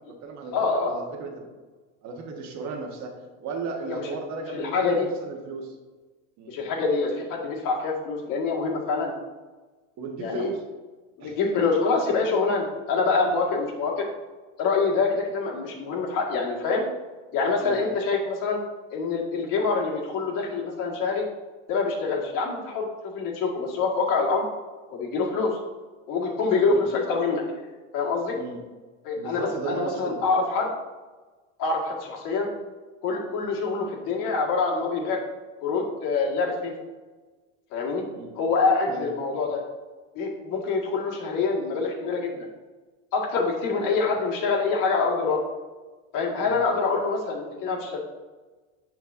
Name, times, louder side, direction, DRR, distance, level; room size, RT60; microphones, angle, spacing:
voice 1, 0.0-1.5 2.0-3.1 3.4-5.8 6.4-6.5 10.0-10.6 11.2-11.4 17.6-17.8 26.6-26.8 28.3-28.6 29.2-30.2 38.1-38.3 38.9-39.2 46.4-46.6, right 4 dB, 50° right, 2 dB, 1.3 m, -35 dB
voice 2, 0.5-0.9 3.9-4.1 4.5-5.1 6.5-9.1 10.2-10.5 11.2-14.1 14.6-16.9 17.3-18.6 18.9-21.2 21.7-22.9 23.1-24.4 24.9-25.6 26.1-27.4 27.9-28.4 29.0-30.7 31.6-32.5 33.0-35.2 35.6-36.7 37.7-38.0 38.4-39.6 40.2-42.5 43.1-45.4 46.1-48.0, left 4 dB, 60° left, -2 dB, 1.8 m, -25 dB
7.3 x 6.0 x 2.6 m, 1.3 s
supercardioid pair, 100°, 37 cm